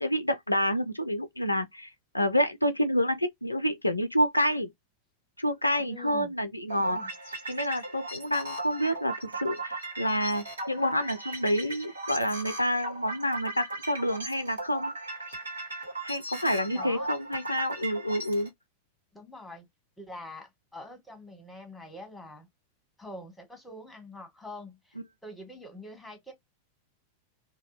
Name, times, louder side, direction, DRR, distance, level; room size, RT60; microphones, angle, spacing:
voice 1, 0.0-1.9 2.1-4.7 5.4-7.0 7.5-14.9 16.0-18.5, equal, 85° left, 0.4 m, -28 dB
voice 2, 5.8-6.3 6.7-7.1 16.7-17.1 19.1-19.7 20.0-22.5 23.0-26.3, left 2 dB, 5° left, 1.2 m, -45 dB
sound 1, 6.7-18.5, right 2 dB, 75° right, 1.1 m, -38 dB
2.7 x 2.1 x 2.5 m
figure-of-eight pair, 90°, 0 cm